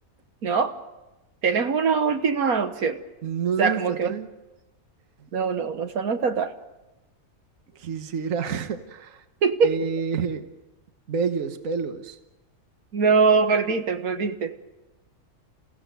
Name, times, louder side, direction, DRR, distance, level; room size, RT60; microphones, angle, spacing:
voice 1, 0.4-0.7 1.4-3.0 3.6-4.1 5.3-6.6 9.4-9.7 12.9-14.5, right 5 dB, 80° right, 7 dB, 1.8 m, -22 dB
voice 2, 3.2-4.3 5.2-5.3 7.7-9.2 9.6-10.4 11.1-12.2, right 6 dB, 65° right, 8 dB, 1.6 m, -28 dB
29.5 x 16.0 x 9.2 m, 1.0 s
omnidirectional pair, 1.5 m